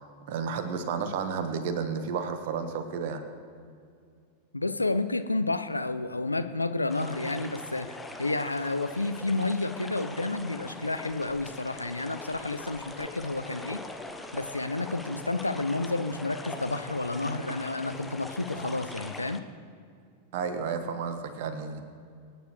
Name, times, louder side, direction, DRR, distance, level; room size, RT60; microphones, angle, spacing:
voice 1, 0.3-3.2 20.3-21.8, right 6 dB, 50° right, 8 dB, 1.3 m, -32 dB
voice 2, 4.5-13.8 14.3-19.4, left 2 dB, 85° left, 10 dB, 0.5 m, -30 dB
sound 1, 6.9-19.4, left 2 dB, 5° left, 0.9 m, -42 dB
24.0 x 9.5 x 3.2 m, 2.3 s
figure-of-eight pair, 90°, 0 cm